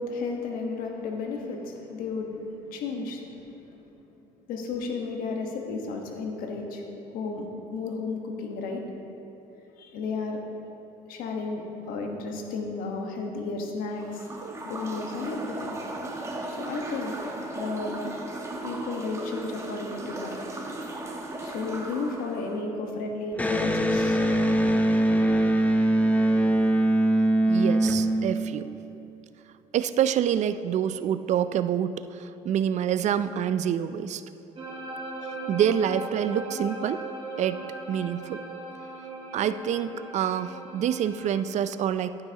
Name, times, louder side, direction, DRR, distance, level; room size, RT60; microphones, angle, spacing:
voice 1, 0.0-2.4 2.7-3.2 4.5-6.8 7.1-8.8 9.8-10.4 11.1-11.6 11.9-14.2 14.6-15.8 16.5-17.2 17.5-18.0 18.6-20.4 20.8-21.0 21.4-24.2, left 4 dB, 75° left, 2 dB, 1.2 m, -33 dB
sound 1, 13.9-22.6, right 2 dB, 20° right, 1.1 m, -36 dB
Electric guitar, 23.3-28.8, right 1 dB, 10° left, 0.7 m, -22 dB
voice 2, 27.5-28.7 29.7-34.2 35.5-37.0 37.4-38.4 39.3-42.2, right 9 dB, 50° right, 13 dB, 0.4 m, -27 dB
sound 2, 34.6-41.4, right 2 dB, 35° right, 1.8 m, -38 dB
11.5 x 9.6 x 2.9 m, 3.0 s
supercardioid pair, 80°, 15 cm